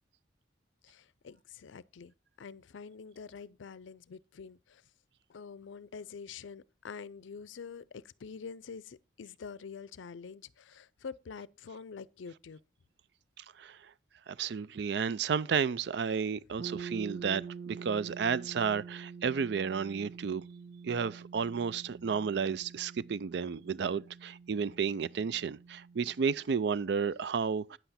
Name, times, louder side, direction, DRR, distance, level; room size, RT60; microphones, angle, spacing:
voice 1, 0.8-4.8 5.3-12.6, left 5 dB, 90° left, 0.5 m, -46 dB
voice 2, 13.4-13.9 14.3-20.4 20.8-27.8, right 6 dB, 65° right, 0.4 m, -32 dB
sound 1, 16.6-26.4, right 5 dB, 85° right, 1.6 m, -47 dB
9.2 x 7.9 x 4.2 m
head